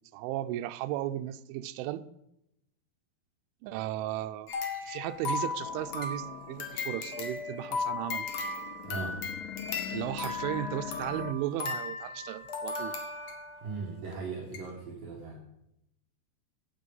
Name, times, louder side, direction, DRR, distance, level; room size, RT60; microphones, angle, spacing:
voice 1, 0.1-2.1 3.6-4.5 4.8-8.3 9.9-13.0, right 13 dB, 85° right, 3.0 m, -35 dB
sound 1, 4.5-13.6 14.1-14.2 14.5-14.7, left 4 dB, 65° left, 1.6 m, -36 dB
sound 2, 5.6-11.3, left 12 dB, 85° left, 3.2 m, -44 dB
voice 2, 8.8-9.2 13.6-15.5, right 4 dB, 55° right, 2.9 m, -38 dB
15.5 x 9.1 x 5.5 m
omnidirectional pair, 5.6 m